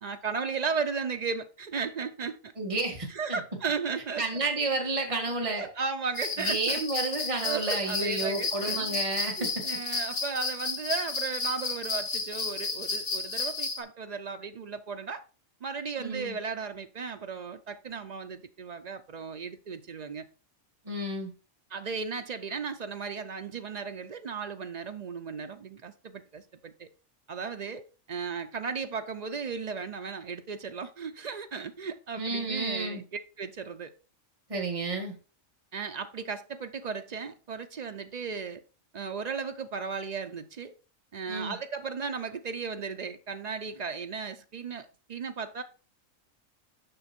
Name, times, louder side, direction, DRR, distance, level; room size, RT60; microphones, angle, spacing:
voice 1, 0.0-2.5 3.1-4.3 5.6-6.9 7.4-9.0 9.4-15.2 15.6-20.2 21.7-26.9 27.3-33.9 35.7-38.6 38.9-40.7 41.1-45.6, right 5 dB, 55° right, 0.4 m, -35 dB
voice 2, 2.6-3.4 4.2-5.7 6.4-9.6 16.0-16.4 20.8-21.3 32.2-33.0 34.5-35.1 41.3-41.6, right 2 dB, 25° right, 1.7 m, -31 dB
sound 1, 6.1-13.8, left 4 dB, 65° left, 1.8 m, -32 dB
6.7 x 5.9 x 4.3 m
omnidirectional pair, 1.3 m